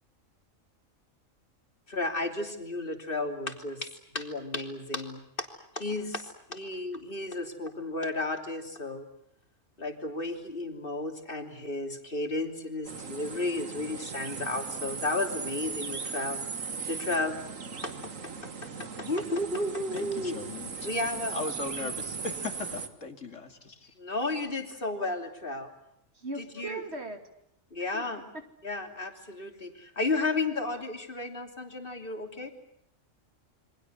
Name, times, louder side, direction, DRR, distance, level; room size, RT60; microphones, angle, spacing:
voice 1, 1.9-5.5 5.7-9.0 9.8-17.4 17.8-17.9 19.0-20.4 20.8-21.4 21.8-21.9 24.0-25.7 26.4-26.8 27.7-28.2 28.6-32.5, left 2 dB, 45° left, 5 dB, 3.4 m, -33 dB
sound 1, 12.8-22.9, right 5 dB, 80° right, 2.1 m, -38 dB
voice 2, 19.9-20.9 21.3-23.9, left 3 dB, 70° left, 7 dB, 3.0 m, -38 dB
voice 3, 26.1-27.2 27.9-28.0, right 2 dB, 55° right, 7 dB, 2.9 m, -38 dB
28.5 x 24.0 x 8.0 m, 0.73 s
omnidirectional pair, 1.3 m